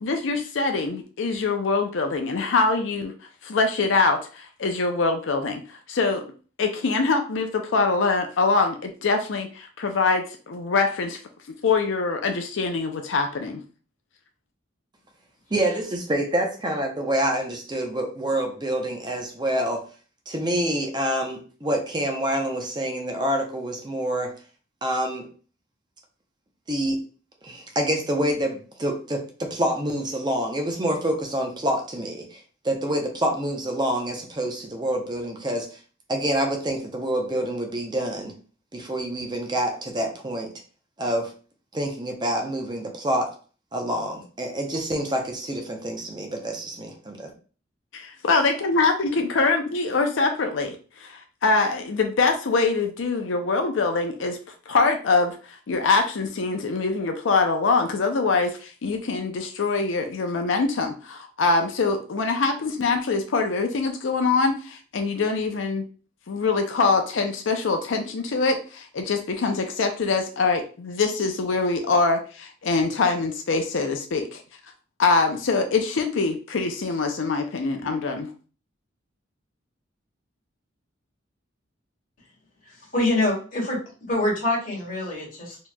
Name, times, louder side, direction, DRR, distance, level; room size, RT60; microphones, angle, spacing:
voice 1, 0.0-3.1 3.4-6.2 6.6-11.2 11.6-13.6 47.9-54.4 54.7-65.8 66.3-74.4 75.0-78.3, left 4 dB, 85° left, 5 dB, 0.5 m, -24 dB
voice 2, 15.5-19.8 20.3-24.3 24.8-25.3 26.7-27.0 27.4-35.8 36.1-38.3 38.7-40.5 41.0-41.3 41.7-43.3 43.7-47.3, right 1 dB, 25° right, 2 dB, 0.7 m, -27 dB
voice 3, 82.6-83.8 84.1-85.6, left 1 dB, 45° left, -3 dB, 1.7 m, -25 dB
4.4 x 2.9 x 2.2 m, 0.38 s
head